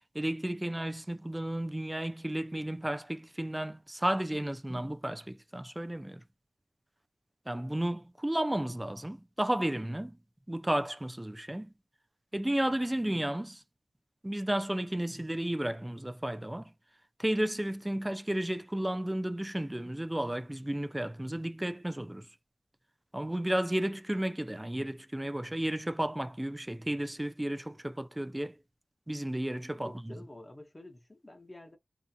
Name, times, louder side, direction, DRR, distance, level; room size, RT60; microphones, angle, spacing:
voice 1, 0.1-6.2 7.5-10.2 10.5-11.7 12.3-13.6 14.2-16.7 17.2-22.3 23.1-28.6 29.1-30.1, right 1 dB, 15° right, 0.4 m, -33 dB
voice 2, 29.7-31.8, left 1 dB, 25° left, 0.7 m, -49 dB
2.7 x 2.5 x 2.2 m
wide cardioid pair, 65°, 0 cm